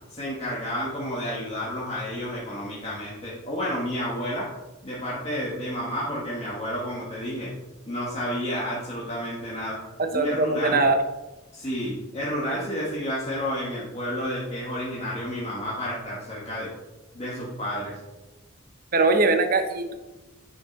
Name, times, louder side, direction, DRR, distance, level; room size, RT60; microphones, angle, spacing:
voice 1, 0.1-4.5 4.8-7.5 7.9-9.8 10.1-10.8 11.5-16.7 17.1-18.0, equal, 30° left, -7 dB, 1.6 m, -30 dB
voice 2, 10.0-11.0 18.9-19.9, right 3 dB, 45° right, 7 dB, 0.9 m, -21 dB
10.5 x 5.8 x 4.1 m, 1.1 s
head